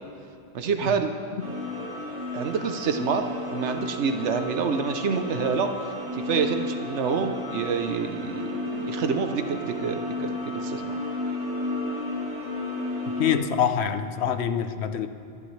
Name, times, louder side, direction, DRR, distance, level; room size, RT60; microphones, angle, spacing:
voice 1, 0.5-1.1 2.3-3.2 3.5-5.7 6.1-10.4 10.6-11.0, right 6 dB, 90° right, 1.1 m, -27 dB
sound 1, 1.4-13.3, left 2 dB, 10° right, 2.7 m, -32 dB
voice 2, 13.2-15.1, left 8 dB, 75° left, 1.0 m, -25 dB
25.0 x 11.0 x 3.2 m
omnidirectional pair, 1.1 m